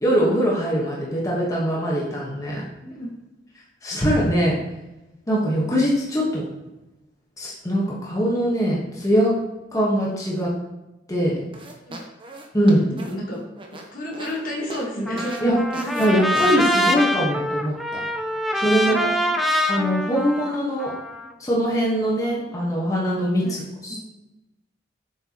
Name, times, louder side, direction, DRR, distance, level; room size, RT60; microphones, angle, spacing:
voice 1, 0.0-2.6 3.8-4.6 5.3-6.4 7.4-9.4 9.7-10.5 11.1-11.4 12.5-12.8 15.4-15.6 16.0-18.0 18.5-19.1 19.7-20.9 21.4-24.0, equal, 20° left, -5 dB, 1.3 m, -22 dB
sound 1, 11.5-14.4 14.7-14.9 15.2-15.4 15.7-16.1 16.4-16.5, right 2 dB, 30° right, 0.8 m, -38 dB
voice 2, 12.8-13.4 13.7-16.2 18.8-19.5 23.4-24.0, equal, 50° left, -3 dB, 1.5 m, -31 dB
Trumpet, 15.1-21.3, equal, ahead, 0.4 m, -24 dB
7.5 x 4.5 x 2.9 m, 0.98 s
head